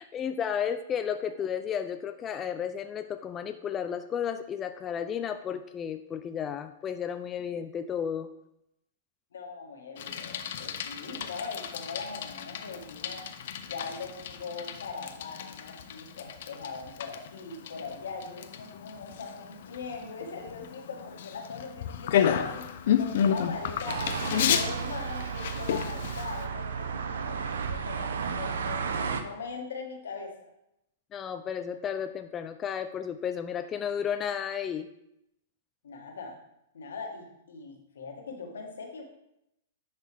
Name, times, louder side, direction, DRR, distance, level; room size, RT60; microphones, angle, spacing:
voice 1, 0.0-8.3 31.1-34.9, left 8 dB, 25° left, 8 dB, 0.4 m, -33 dB
voice 2, 9.3-22.7 23.0-24.1 24.5-30.5 35.8-36.4 36.7-39.0, left 4 dB, 85° left, 2 dB, 1.6 m, -41 dB
Bicycle, 10.0-26.5, left 9 dB, 65° left, 0.6 m, -32 dB
sound 1, 23.9-29.2, right 6 dB, 80° right, 0.7 m, -33 dB
10.5 x 4.1 x 3.4 m, 0.83 s
hypercardioid pair, 130°, 0 cm